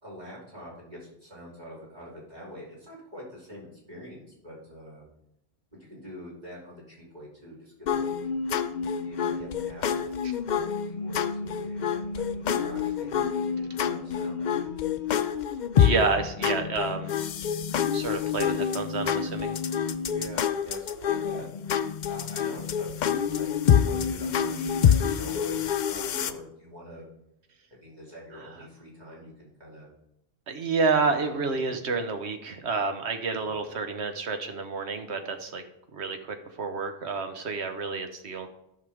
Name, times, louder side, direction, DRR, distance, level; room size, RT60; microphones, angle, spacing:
voice 1, 0.0-5.0 5.7-8.1 9.0-14.7 20.1-21.4 22.1-27.1 27.8-29.9 31.0-31.7 33.4-33.6, equal, 40° right, -5 dB, 3.1 m, -44 dB
sound 1, 7.9-26.3, left 8 dB, 55° left, 0.5 m, -27 dB
voice 2, 15.8-17.1 17.9-19.5 30.5-35.6 35.9-38.5, right 4 dB, 90° right, 7 dB, 1.3 m, -29 dB
13.5 x 5.7 x 3.5 m, 0.79 s
omnidirectional pair, 1.1 m